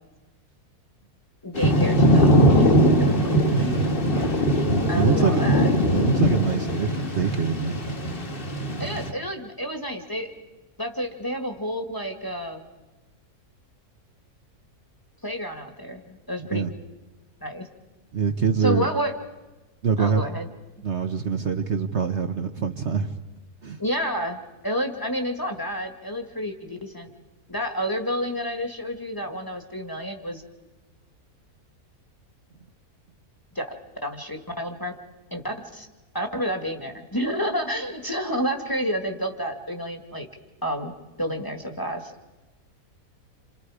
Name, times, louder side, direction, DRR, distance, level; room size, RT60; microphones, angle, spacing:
voice 1, 1.4-3.4 3.6-4.0 4.9-5.7 8.8-10.3 10.8-12.7 15.2-16.6 17.4-17.7 18.6-19.1 20.0-20.5 23.8-27.1 27.5-30.4 33.5-33.7 34.0-34.9 35.3-35.9 36.1-40.3 40.6-40.9 41.2-42.1, equal, 15° left, 3 dB, 1.7 m, -29 dB
Thunder / Rain, 1.6-9.1, equal, 35° left, 1.9 m, -21 dB
voice 2, 3.5-3.9 4.9-5.4 5.9-6.9 7.1-7.8 16.5-16.7 18.1-18.9 19.8-20.2 20.8-23.1 23.6-23.8, right 6 dB, 50° right, 7 dB, 1.2 m, -24 dB
28.0 x 28.0 x 5.0 m, 1.2 s
omnidirectional pair, 1.6 m